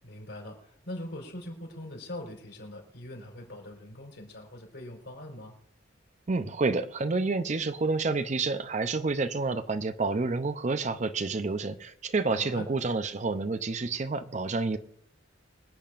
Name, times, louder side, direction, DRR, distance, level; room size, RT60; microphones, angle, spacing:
voice 1, 0.0-5.5 12.3-12.7, left 1 dB, 75° left, 4.4 m, -42 dB
voice 2, 6.3-14.8, right 3 dB, 40° right, 0.5 m, -29 dB
25.5 x 8.7 x 2.5 m
head